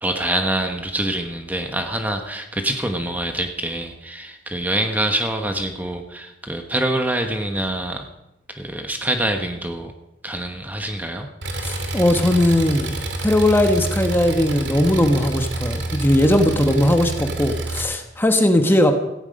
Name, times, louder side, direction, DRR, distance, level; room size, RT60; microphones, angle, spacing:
voice 1, 0.0-8.1 8.5-9.9 10.2-11.3, right 1 dB, 10° right, 4 dB, 1.2 m, -25 dB
Engine, 11.4-17.8, right 2 dB, 70° right, 2.6 m, -28 dB
voice 2, 11.6-18.9, left 1 dB, 10° left, 5 dB, 1.2 m, -19 dB
17.0 x 15.0 x 5.4 m, 0.90 s
head